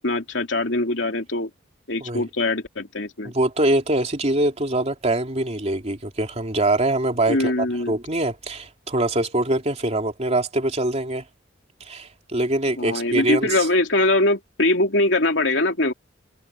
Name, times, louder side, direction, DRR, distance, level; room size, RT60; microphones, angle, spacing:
voice 1, 0.0-1.5 1.9-3.3 7.3-7.9 12.8-15.9, left 2 dB, 75° left, 3.2 m, -22 dB
voice 2, 3.2-11.2 11.8-13.7, right 1 dB, 35° right, 3.0 m, -23 dB
head